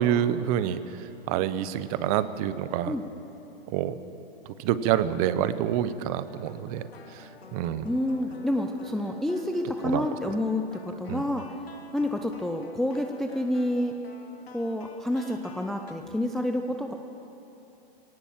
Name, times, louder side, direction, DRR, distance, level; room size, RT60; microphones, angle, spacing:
voice 1, 0.0-3.0 3.7-3.9 4.5-7.9 9.8-10.1 11.1-11.4, right 11 dB, 35° right, 14 dB, 0.9 m, -28 dB
sound 1, 6.3-15.9, left 5 dB, 80° left, 2.5 m, -49 dB
voice 2, 7.8-11.4 11.9-14.0 14.5-16.9, left 1 dB, ahead, 4 dB, 0.4 m, -28 dB
20.5 x 17.5 x 7.5 m, 3.0 s
hypercardioid pair, 130°, 30 cm